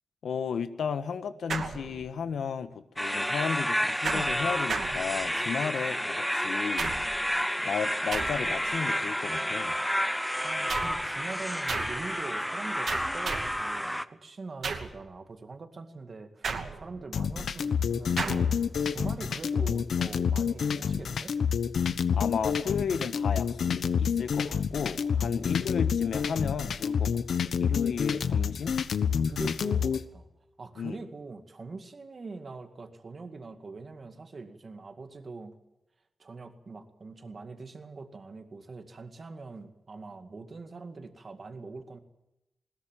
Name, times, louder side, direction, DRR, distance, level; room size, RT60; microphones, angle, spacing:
voice 1, 0.2-7.2 7.6-9.7 22.1-28.8 29.2-29.5 30.8-31.0, left 6 dB, 90° left, 10 dB, 1.6 m, -34 dB
sound 1, 1.5-2.3 4.0-5.6 6.8-7.3 8.1-8.7 10.7-11.1 11.7-12.1 12.9-13.7 14.6-15.0 16.4-17.1 18.2-18.6, right 5 dB, 60° right, 2.6 m, -35 dB
sound 2, 3.0-14.0, equal, ahead, 0.7 m, -30 dB
voice 2, 10.4-16.5 16.8-21.4 25.2-25.5 29.2-30.3 30.6-35.6 36.2-42.0, right 3 dB, 35° right, 7 dB, 2.1 m, -43 dB
sound 3, 17.1-30.0, left 7 dB, 70° left, 1.1 m, -28 dB
21.0 x 20.5 x 7.5 m, 0.90 s
wide cardioid pair, 175°, 0 cm